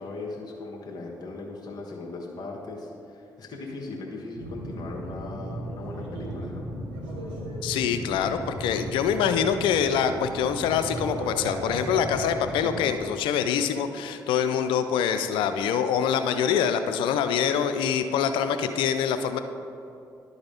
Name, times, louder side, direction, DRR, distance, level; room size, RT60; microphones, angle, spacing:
voice 1, 0.0-6.7, left 3 dB, 55° left, -2 dB, 1.4 m, -38 dB
sound 1, 4.4-12.9, right 1 dB, 85° right, 1.3 m, -35 dB
voice 2, 7.6-19.4, left 8 dB, 80° left, 9 dB, 0.4 m, -25 dB
11.5 x 4.0 x 5.1 m, 2.6 s
supercardioid pair, 55°, 8 cm